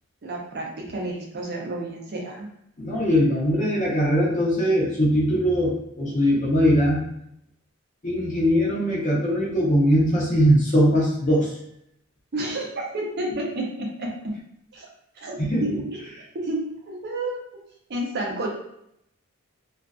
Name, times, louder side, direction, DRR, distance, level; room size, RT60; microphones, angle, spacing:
voice 1, 0.2-2.5 12.3-14.4 14.7-14.9 15.1-16.1 16.3-17.4 17.9-18.5, right 1 dB, 45° right, -1 dB, 0.5 m, -30 dB
voice 2, 2.8-7.0 8.0-11.5 15.4-15.8, equal, 35° left, -4 dB, 0.7 m, -21 dB
2.4 x 2.4 x 2.2 m, 0.77 s
head